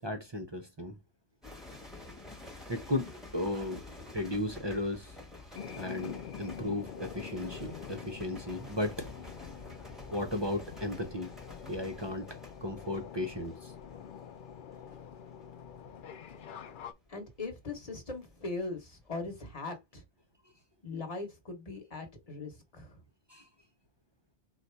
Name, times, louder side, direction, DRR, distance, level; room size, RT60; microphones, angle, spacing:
voice 1, 0.0-1.0 2.7-3.9 4.1-5.2 5.8-9.1 10.1-11.4 11.7-13.7 23.3-23.5, left 1 dB, 30° right, 0.5 m, -35 dB
sound 1, 1.4-18.7 18.9-19.3, left 2 dB, ahead, 1.2 m, -50 dB
sound 2, 5.5-16.9, left 8 dB, 60° left, 0.6 m, -46 dB
voice 2, 17.1-20.0 20.8-23.0, left 3 dB, 35° left, 1.2 m, -40 dB
4.0 x 2.5 x 4.4 m
omnidirectional pair, 1.2 m